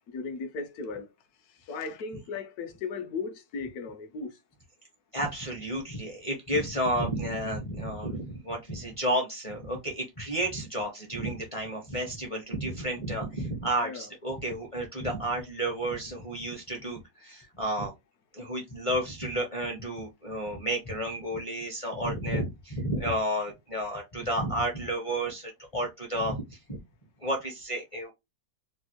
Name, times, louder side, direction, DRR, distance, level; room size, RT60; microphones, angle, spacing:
voice 1, 0.1-1.1 1.7-4.4 13.8-14.1, left 4 dB, 70° left, 1.0 m, -36 dB
voice 2, 5.1-17.9 18.3-26.8 27.2-28.1, right 1 dB, 35° left, 0.5 m, -31 dB
3.3 x 2.4 x 2.9 m
omnidirectional pair, 1.9 m